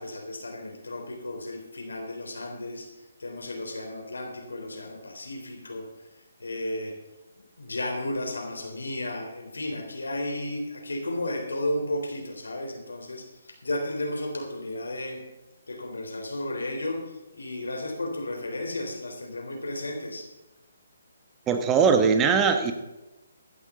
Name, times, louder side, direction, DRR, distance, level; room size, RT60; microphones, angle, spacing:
voice 1, 0.0-2.9 3.2-5.9 6.4-7.0 7.6-15.2 15.7-17.0 17.3-20.3, left 1 dB, 85° left, 2 dB, 3.7 m, -33 dB
voice 2, 21.5-22.7, right 6 dB, 15° right, 7 dB, 1.1 m, -20 dB
15.5 x 11.0 x 3.9 m, 1.0 s
figure-of-eight pair, 150°, 0 cm